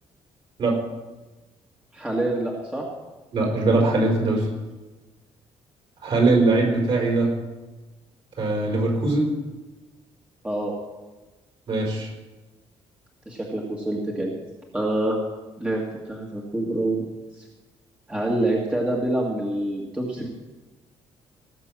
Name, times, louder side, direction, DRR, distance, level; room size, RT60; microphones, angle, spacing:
voice 1, 1.9-2.9 4.2-4.3 10.4-10.7 13.3-14.3 14.7-15.2 15.6-17.1 17.3-17.5 18.1-20.3, right 1 dB, 10° right, -2 dB, 1.8 m, -26 dB
voice 2, 3.3-4.5 6.0-7.3 8.4-9.3 11.7-12.1, right 2 dB, 50° right, 0 dB, 5.0 m, -21 dB
18.0 x 6.8 x 7.5 m, 1.2 s
cardioid pair, 140°, 12 cm